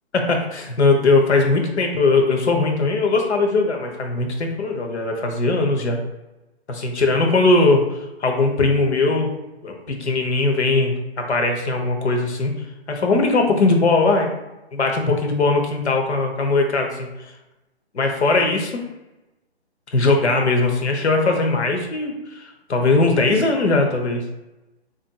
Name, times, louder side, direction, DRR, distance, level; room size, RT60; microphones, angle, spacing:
voice 1, 0.1-6.0 6.7-9.3 9.6-12.5 12.9-14.3 14.7-17.1 17.9-18.8 19.9-24.2, left 3 dB, 80° left, 3 dB, 0.9 m, -20 dB
4.0 x 2.5 x 2.2 m, 1.0 s
hypercardioid pair, 145°, 33 cm